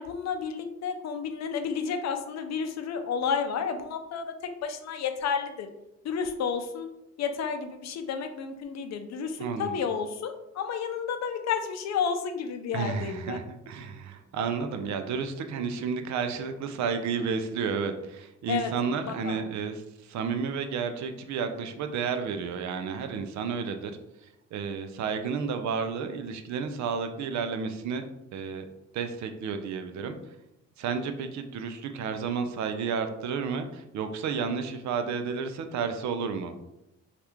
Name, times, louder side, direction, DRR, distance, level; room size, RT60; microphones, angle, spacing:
voice 1, 0.0-5.7 6.0-6.9 7.2-13.4 18.5-18.7 19.1-19.4, left 6 dB, 60° left, 7 dB, 0.5 m, -31 dB
voice 2, 9.4-9.8 12.7-23.9 24.5-28.0 28.3-28.6 28.9-30.2 30.8-36.5, right 6 dB, 65° right, 8 dB, 0.5 m, -31 dB
2.9 x 2.4 x 3.4 m, 0.87 s
cardioid pair, 90°, 30 cm